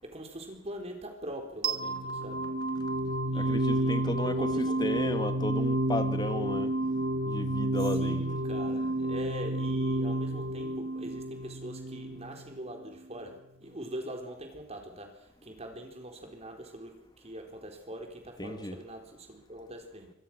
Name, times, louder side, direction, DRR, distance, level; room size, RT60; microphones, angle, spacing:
voice 1, 0.0-2.5 3.3-5.2 7.8-20.1, right 1 dB, 30° right, 4 dB, 4.4 m, -43 dB
sound 1, 1.6-12.6, right 1 dB, 50° right, 1.3 m, -30 dB
voice 2, 3.3-6.7 7.3-8.2 18.4-18.8, left 1 dB, 20° left, 9 dB, 1.4 m, -34 dB
25.0 x 21.5 x 6.3 m, 0.78 s
head